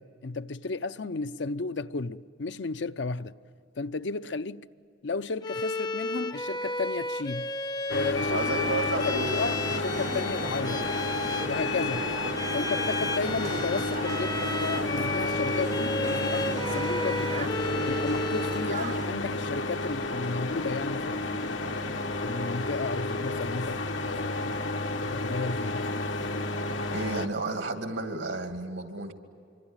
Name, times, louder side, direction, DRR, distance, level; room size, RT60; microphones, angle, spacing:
voice 1, 0.0-3.3 3.8-4.6 5.0-7.5 7.9-8.4 9.0-10.9 11.5-12.1 12.5-17.5 17.9-21.6 22.2-24.6 24.9-26.0, left 4 dB, 70° left, 0.7 m, -33 dB
Bowed string instrument, 5.4-18.8, left 3 dB, 20° left, 0.6 m, -33 dB
sound 1, 7.9-27.3, left 2 dB, 90° left, 1.4 m, -31 dB
sound 2, 8.3-19.1, right 3 dB, 40° right, 0.7 m, -38 dB
voice 2, 8.3-9.5 26.6-29.1, right 2 dB, 85° right, 2.5 m, -32 dB
25.5 x 25.5 x 9.0 m
head